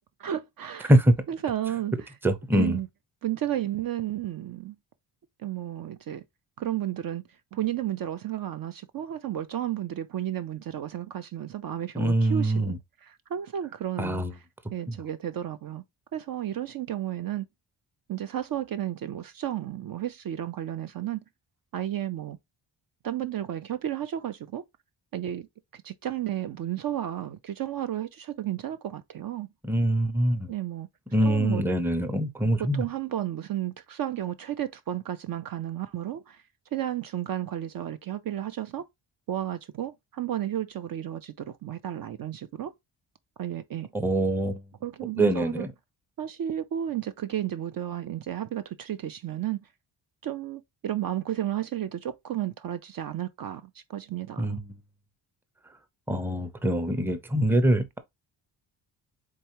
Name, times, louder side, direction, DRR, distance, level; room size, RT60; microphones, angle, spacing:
voice 1, 0.2-0.9 1.3-1.9 2.5-2.9 3.2-4.8 5.4-6.2 6.6-7.2 7.5-14.2 14.7-15.8 16.1-17.5 18.1-21.2 21.7-22.4 23.0-24.6 25.1-25.5 25.7-29.5 30.5-30.9 31.2-31.6 32.6-36.4 36.7-38.9 39.3-42.7 43.4-43.9 44.8-45.7 46.2-49.6 50.2-54.6, right 11 dB, 55° right, 0.5 m, -32 dB
voice 2, 2.2-2.8 11.9-12.8 14.0-14.3 14.9-15.0 29.6-30.5 31.1-32.8 43.9-44.6 45.2-45.7 54.4-54.8 56.1-58.0, right 1 dB, 5° right, 0.7 m, -24 dB
4.5 x 3.6 x 2.9 m
cardioid pair, 90°, 43 cm